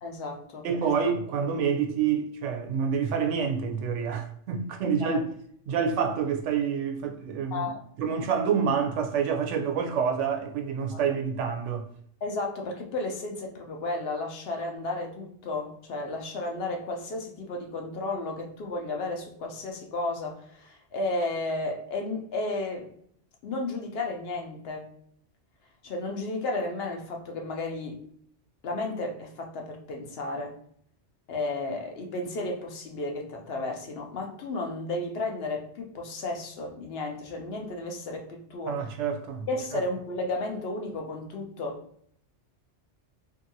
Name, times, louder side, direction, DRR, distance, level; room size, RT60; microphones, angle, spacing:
voice 1, 0.0-0.9 5.0-5.1 7.5-7.8 10.9-11.0 12.2-22.9 23.4-24.9 25.8-28.0 28.6-30.5 31.3-38.9 39.5-41.8, left 2 dB, 65° left, 0.8 m, -33 dB
voice 2, 0.6-5.2 5.7-7.7 8.0-11.9 38.7-39.5 39.7-39.8, right 6 dB, 90° right, 0.9 m, -27 dB
2.7 x 2.6 x 2.7 m
omnidirectional pair, 1.2 m